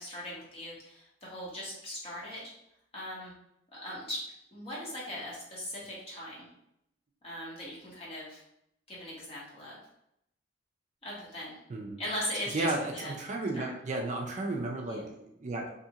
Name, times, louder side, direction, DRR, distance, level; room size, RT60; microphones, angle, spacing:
voice 1, 0.0-2.5 2.9-3.3 3.7-4.2 4.5-6.5 7.2-8.4 8.9-9.8 11.0-11.6 12.0-13.1 13.5-13.7 14.9-15.1, left 1 dB, 35° left, -6 dB, 1.2 m, -39 dB
voice 2, 11.7-12.0 12.5-15.7, right 2 dB, 40° right, 1 dB, 0.4 m, -33 dB
2.8 x 2.4 x 2.8 m, 0.77 s
head